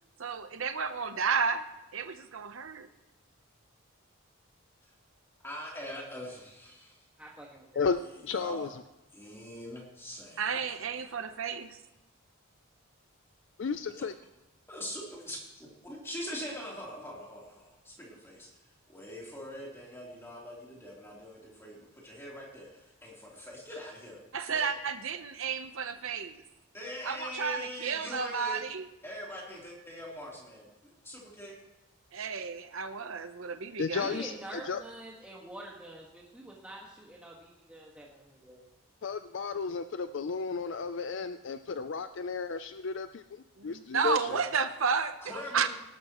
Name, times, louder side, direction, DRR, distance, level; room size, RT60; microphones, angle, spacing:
voice 1, 0.2-1.7 1.9-2.9 10.4-11.8 24.3-26.4 27.0-28.9 32.1-34.2 43.6-45.7, right 5 dB, 70° right, 9 dB, 0.8 m, -32 dB
voice 2, 5.4-7.0 8.0-8.7 9.1-10.7 14.0-14.1 14.7-18.5 18.9-24.2 24.5-24.7 26.7-28.6 29.0-30.7 31.0-31.6 44.3-44.4 45.2-45.7, equal, 10° left, -4 dB, 3.3 m, -43 dB
voice 3, 7.2-7.8 33.9-38.6, right 1 dB, 5° right, -4 dB, 1.5 m, -46 dB
voice 4, 7.8-8.7 13.6-14.1 33.8-34.3 34.7-34.8 39.0-44.4, left 5 dB, 55° left, 11 dB, 0.4 m, -33 dB
18.5 x 12.5 x 3.0 m, 0.98 s
head